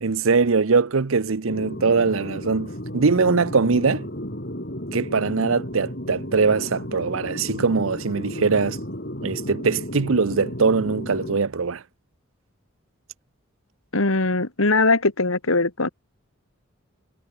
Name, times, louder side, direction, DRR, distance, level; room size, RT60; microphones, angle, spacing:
voice 1, 0.0-4.1 4.9-8.8 9.2-11.8, right 4 dB, 75° right, 0.7 m, -22 dB
sound 1, 1.5-11.4, equal, 45° left, 7.1 m, -33 dB
voice 2, 13.9-15.9, left 3 dB, 80° left, 2.4 m, -21 dB
head